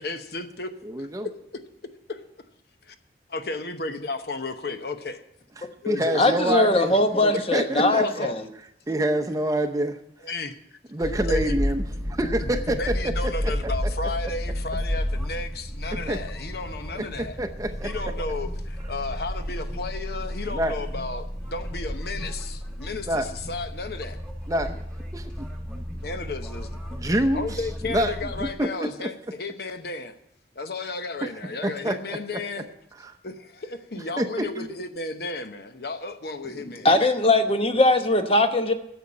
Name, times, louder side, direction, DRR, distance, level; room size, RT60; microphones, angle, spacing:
voice 1, 0.0-1.3 2.1-2.2 2.9-3.0 3.3-5.2 5.8-6.2 7.5-8.3 10.2-10.8 11.3-11.6 12.4-17.4 17.8-24.2 26.0-26.8 27.0-30.2 30.5-32.7 33.2-36.9, left 3 dB, 60° left, 8 dB, 0.9 m, -33 dB
voice 2, 0.8-1.3 5.6-8.0 8.9-10.0 10.9-12.8 13.0-13.3 13.6-13.7 16.1-16.2 17.0-17.1 17.4-18.1 20.5-20.7 23.1-23.3 24.5-24.8 25.1-25.3 25.7-25.8 26.9-27.6 27.9-28.1 28.4-29.1 31.6-32.4 33.0-33.1 34.2-34.7, right 1 dB, 20° right, 7 dB, 0.7 m, -27 dB
voice 3, 6.1-8.4 36.8-38.7, left 2 dB, 30° left, 7 dB, 0.9 m, -20 dB
sound 1, 11.0-28.5, equal, 5° left, 1.8 m, -32 dB
10.5 x 7.1 x 8.6 m, 0.80 s
head